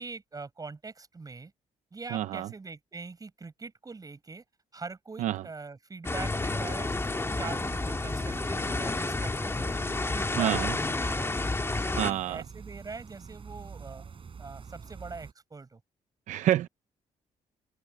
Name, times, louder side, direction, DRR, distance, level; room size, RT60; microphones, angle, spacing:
voice 1, 0.0-1.5 1.9-4.4 4.7-6.9 7.4-9.8 10.1-11.4 11.7-14.0 14.4-15.8, right 4 dB, 30° right, 7.7 m, -42 dB
voice 2, 2.1-2.5 5.2-5.4 10.4-10.7 12.0-12.4 16.3-16.7, right 13 dB, 80° right, 0.6 m, -27 dB
sound 1, 6.0-12.1, left 2 dB, 20° left, 2.3 m, -30 dB
sound 2, 6.3-15.3, right 6 dB, 45° right, 6.8 m, -47 dB
open air
cardioid pair, 85°, 12 cm